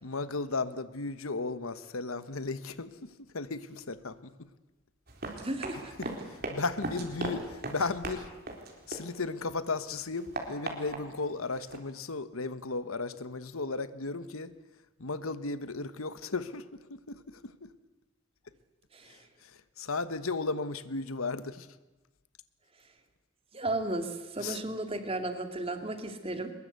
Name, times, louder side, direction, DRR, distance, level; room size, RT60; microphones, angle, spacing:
voice 1, 0.0-4.5 6.0-8.3 8.9-14.5 15.0-17.7 19.1-21.7 24.4-24.6, left 3 dB, 85° left, 14 dB, 1.2 m, -35 dB
Run, 5.1-9.5 9.9-11.8, right 2 dB, 45° right, 3.9 m, -39 dB
voice 2, 5.4-5.9 18.9-19.3 23.5-26.5, right 2 dB, 25° right, 7 dB, 2.3 m, -34 dB
23.0 x 21.5 x 8.3 m, 1.1 s
head